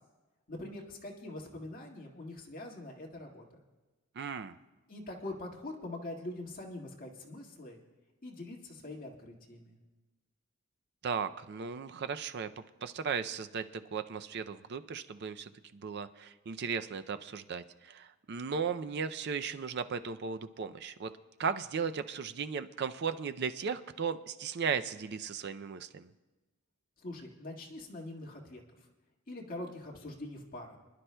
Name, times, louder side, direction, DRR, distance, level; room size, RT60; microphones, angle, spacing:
voice 1, 0.5-3.4 4.9-7.8 8.2-9.7 27.0-28.6 29.3-30.8, left 2 dB, 45° left, -1 dB, 1.8 m, -43 dB
voice 2, 4.2-4.6 11.0-21.1 21.4-26.1, right 6 dB, 55° right, 10 dB, 0.5 m, -36 dB
25.0 x 11.5 x 2.2 m, 1.2 s
head